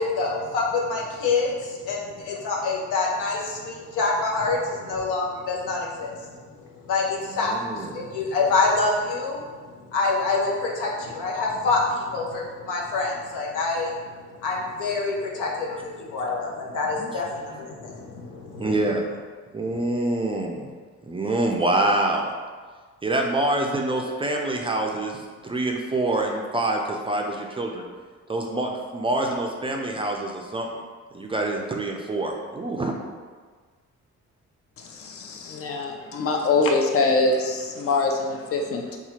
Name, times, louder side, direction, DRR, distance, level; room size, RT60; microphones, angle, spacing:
voice 1, 0.0-14.0 14.4-18.7 19.6-19.8, left 3 dB, 85° left, -2 dB, 0.8 m, -26 dB
voice 2, 7.3-8.0 17.0-17.1 18.5-19.0 19.5-20.7 21.1-22.3 23.0-27.9 28.3-30.8 31.1-33.0, right 2 dB, 20° right, 0 dB, 0.4 m, -26 dB
voice 3, 34.9-39.0, left 3 dB, 50° left, 2 dB, 0.6 m, -24 dB
4.2 x 2.4 x 2.9 m, 1.5 s
cardioid pair, 90°, 30 cm